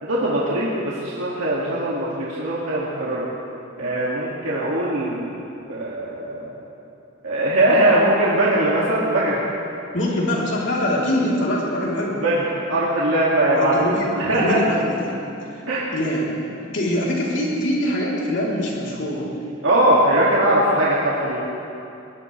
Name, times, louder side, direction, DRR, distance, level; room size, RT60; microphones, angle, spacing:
voice 1, 0.0-3.2 3.8-5.4 5.7-6.5 7.2-9.4 12.2-13.8 14.1-14.6 15.7-15.9 19.6-21.4, right 1 dB, 80° right, -7 dB, 2.3 m, -20 dB
voice 2, 9.9-12.2 13.5-15.2 15.5-15.6 15.9-16.4 16.7-19.3, left 1 dB, 60° left, -4 dB, 3.6 m, -23 dB
21.5 x 19.5 x 3.4 m, 2.8 s
head